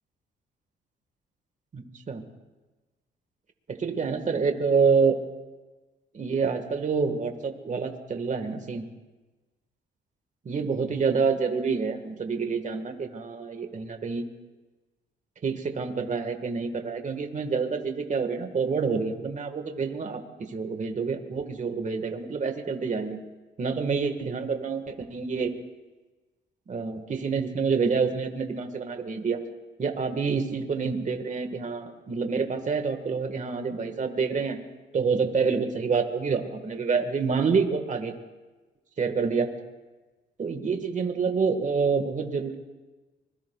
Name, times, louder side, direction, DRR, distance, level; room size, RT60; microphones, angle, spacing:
voice 1, 1.7-2.2 3.7-5.2 6.1-8.9 10.4-14.2 15.4-23.2 23.6-25.5 26.7-29.4 29.8-34.6 34.9-38.1 39.0-39.5 40.4-42.6, right 5 dB, 40° right, 6 dB, 1.6 m, -27 dB
25.0 x 21.5 x 2.3 m, 1.2 s
cardioid pair, 90°, 20 cm